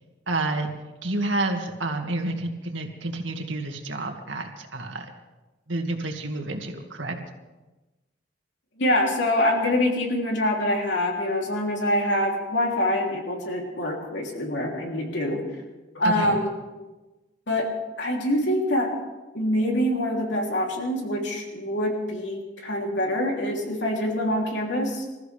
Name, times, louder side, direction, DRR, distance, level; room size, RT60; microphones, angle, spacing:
voice 1, 0.3-0.7 1.0-5.1 5.7-7.2 16.0-16.4, right 2 dB, 85° right, 3 dB, 2.1 m, -29 dB
voice 2, 8.8-15.4 15.9-16.5 17.5-17.7 18.0-18.9 19.3-25.0, left 1 dB, 70° left, 0 dB, 3.3 m, -25 dB
27.0 x 14.0 x 3.5 m, 1.1 s
head